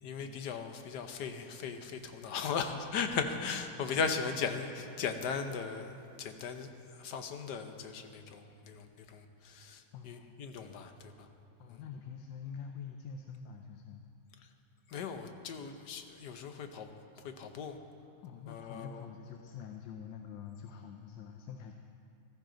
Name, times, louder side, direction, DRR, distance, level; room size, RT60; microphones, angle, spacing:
voice 1, 0.0-11.3 11.7-11.8 14.4-14.5 14.9-17.8 18.5-19.0, left 5 dB, 70° left, 7 dB, 1.4 m, -38 dB
voice 2, 9.9-10.3 11.6-14.0 18.2-21.7, left 7 dB, 85° left, 4 dB, 1.4 m, -46 dB
15.0 x 13.5 x 3.9 m, 2.5 s
omnidirectional pair, 1.9 m